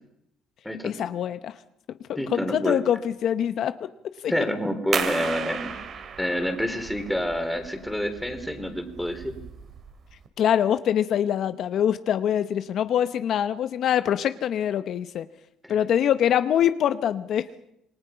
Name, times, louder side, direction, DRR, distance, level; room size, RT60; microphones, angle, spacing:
voice 1, 0.8-1.6 2.1-3.7 4.2-4.3 10.4-15.3 15.7-17.5, left 9 dB, 60° left, 12 dB, 0.8 m, -24 dB
voice 2, 2.2-2.8 4.3-5.7 6.2-9.4 15.7-15.8, equal, 5° left, 6 dB, 3.4 m, -28 dB
sound 1, 4.9-10.3, right 6 dB, 50° right, 2.5 m, -34 dB
27.0 x 20.0 x 5.6 m, 0.80 s
cardioid pair, 110°, 0 cm